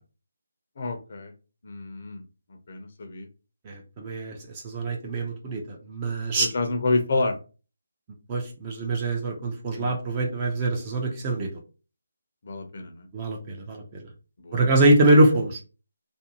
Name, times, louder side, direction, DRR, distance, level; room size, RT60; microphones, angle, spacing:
voice 1, 0.8-1.3 1.6-2.2 2.7-3.3 6.4-7.4 9.8-10.0 12.4-13.1 14.4-14.7, left 3 dB, 45° left, 5 dB, 0.6 m, -29 dB
voice 2, 3.7-4.3 4.6-6.5 8.3-11.5 13.1-13.8 14.5-15.6, right 2 dB, 20° right, 0 dB, 0.5 m, -23 dB
2.6 x 2.2 x 2.8 m, 0.34 s
figure-of-eight pair, 165°, 0 cm